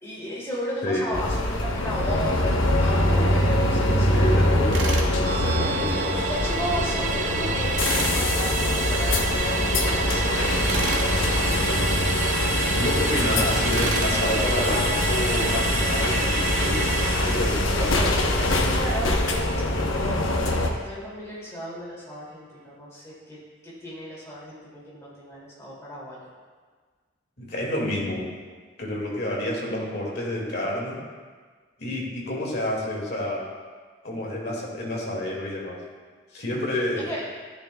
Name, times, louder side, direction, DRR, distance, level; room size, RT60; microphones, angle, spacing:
voice 1, 0.0-4.2 5.3-11.1 17.8-18.1 18.4-19.1 19.9-23.4 23.6-26.2 37.1-37.2, equal, 15° left, -7 dB, 2.5 m, -35 dB
voice 2, 0.8-1.1 4.1-4.8 5.4-6.2 10.4-10.5 12.8-16.9 17.2-17.9 27.4-28.3 28.8-31.0 31.8-33.4 34.0-35.8 36.3-37.1, left 1 dB, 50° left, -3 dB, 2.0 m, -29 dB
sound 1, 1.1-20.7, left 1 dB, 80° left, 0.9 m, -23 dB
Tools, 4.7-5.1 7.7-8.2 10.7-11.1 13.7-14.1, right 3 dB, 75° right, 1.0 m, -30 dB
Musical instrument, 5.2-19.9 20.2-20.3, right 7 dB, 40° right, 0.3 m, -31 dB
11.5 x 10.5 x 2.3 m, 1.5 s
head